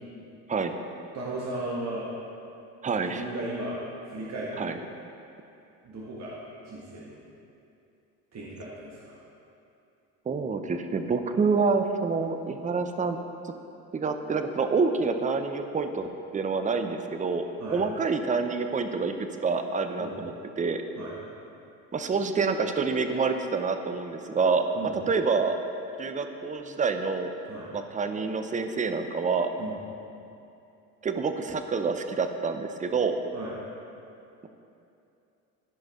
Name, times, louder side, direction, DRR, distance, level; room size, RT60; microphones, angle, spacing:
voice 1, 1.1-2.1 3.0-3.8 4.1-4.7 5.8-6.4 6.6-7.1 8.3-9.2 17.6-17.8 20.0-20.2 21.0-21.1 24.7-25.0 27.5-27.7 29.6-29.8 33.3-33.5, right 2 dB, 35° right, -5 dB, 1.7 m, -36 dB
voice 2, 2.8-3.2 4.6-4.7 10.3-13.2 13.4-13.5 13.9-17.4 17.7-19.1 19.4-20.8 21.9-24.6 25.1-25.6 26.0-27.3 27.7-29.5 31.0-33.2, right 4 dB, 20° right, 7 dB, 0.6 m, -27 dB
14.5 x 5.3 x 3.7 m, 2.7 s
hypercardioid pair, 65°, 43 cm